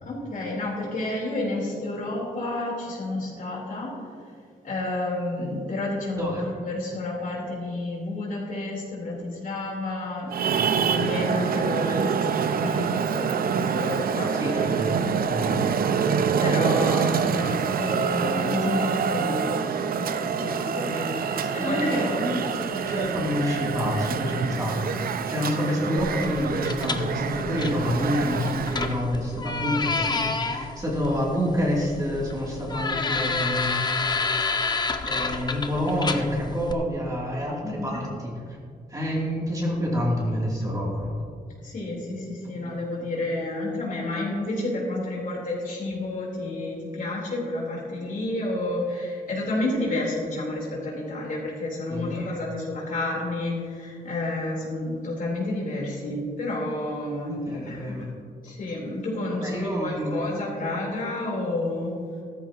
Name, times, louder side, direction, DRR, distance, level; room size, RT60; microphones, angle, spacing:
voice 1, 0.0-4.0 4.6-10.3 10.7-14.7 15.0-15.7 16.4-22.4 37.6-38.0 41.6-58.1 58.4-61.9, left 2 dB, 55° left, -3 dB, 3.7 m, -30 dB
Traffic noise roadway noise, 10.3-29.0, right 7 dB, 65° right, 0.6 m, -26 dB
voice 2, 14.4-15.6 21.3-33.7 35.1-38.1 38.5-38.6 38.9-41.1 42.6-42.7 51.9-52.2 57.3-58.1 59.4-60.1, equal, 20° right, -4 dB, 2.8 m, -28 dB
sound 1, 26.0-36.7, left 4 dB, 25° left, 0.8 m, -30 dB
15.5 x 13.5 x 2.9 m, 2.1 s
wide cardioid pair, 140°, 17 cm